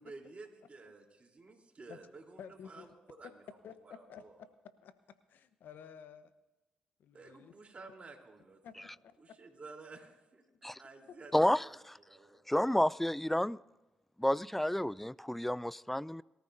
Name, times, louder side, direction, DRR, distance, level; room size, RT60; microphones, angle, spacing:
voice 1, 0.0-2.9 3.2-3.3 3.8-4.4 7.1-8.9 9.2-11.3 11.6-12.4, right 3 dB, 40° right, 3.6 m, -53 dB
voice 2, 2.4-3.0 3.6-4.5 4.8-4.9 5.3-6.3 7.0-7.9 8.6-9.4 11.1-11.2, left 8 dB, 70° left, 1.0 m, -52 dB
voice 3, 12.5-13.6 14.2-16.2, left 1 dB, 5° left, 0.4 m, -30 dB
23.0 x 14.0 x 2.7 m
hypercardioid pair, 50°, 3 cm